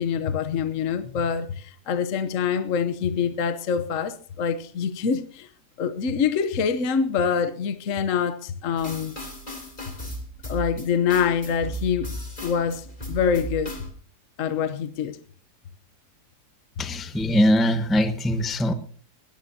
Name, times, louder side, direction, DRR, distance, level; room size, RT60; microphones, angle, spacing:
voice 1, 0.0-5.5 5.8-9.1 10.5-12.1 12.4-13.7 14.4-15.2, left 6 dB, 55° left, 1.2 m, -25 dB
sound 1, 8.8-13.9, equal, 30° left, 3.3 m, -35 dB
voice 2, 16.8-18.7, equal, ahead, 0.8 m, -22 dB
21.0 x 17.5 x 2.8 m
omnidirectional pair, 1.7 m